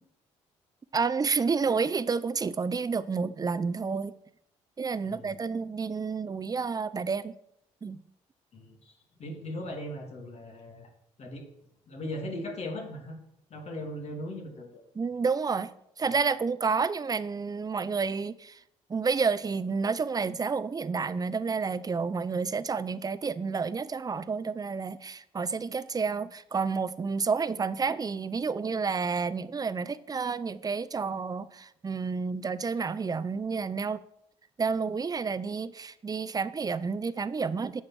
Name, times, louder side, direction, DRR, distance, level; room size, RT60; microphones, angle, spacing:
voice 1, 0.9-4.1 4.8-7.4 7.8-8.0 15.0-15.7 16.0-18.6 18.9-34.0 34.6-37.8, right 5 dB, 30° right, 16 dB, 0.7 m, -30 dB
voice 2, 5.0-5.3 8.5-10.9 11.2-11.5 11.9-13.2 13.5-14.8, left 1 dB, 55° left, 1 dB, 2.8 m, -38 dB
8.7 x 6.5 x 6.2 m, 0.74 s
supercardioid pair, 65°, 13 cm